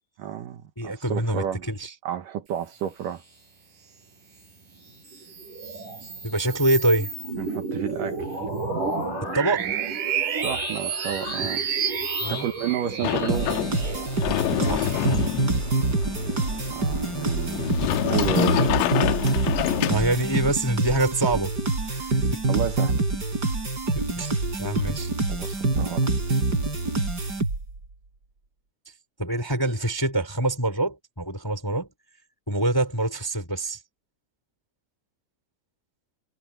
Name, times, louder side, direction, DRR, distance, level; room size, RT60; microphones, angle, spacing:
voice 1, 0.2-1.6 2.0-3.2 7.4-8.4 10.3-11.7 12.3-13.6 16.7-17.7 18.0-18.7 22.5-23.0 25.3-26.1, right 10 dB, 80° right, 1.9 m, -31 dB
voice 2, 0.8-1.9 6.2-7.1 9.2-9.7 12.2-12.5 14.6-15.3 19.3-19.5 19.9-21.6 21.9-22.4 23.9-25.1 29.2-31.9 32.5-33.8, right 1 dB, 5° left, 3.5 m, -26 dB
sound 1, 4.9-15.8, right 5 dB, 40° right, 7.6 m, -31 dB
Sliding door, 13.0-20.5, left 14 dB, 75° left, 3.0 m, -27 dB
sound 2, 13.3-27.8, right 3 dB, 20° right, 4.4 m, -26 dB
omnidirectional pair, 5.6 m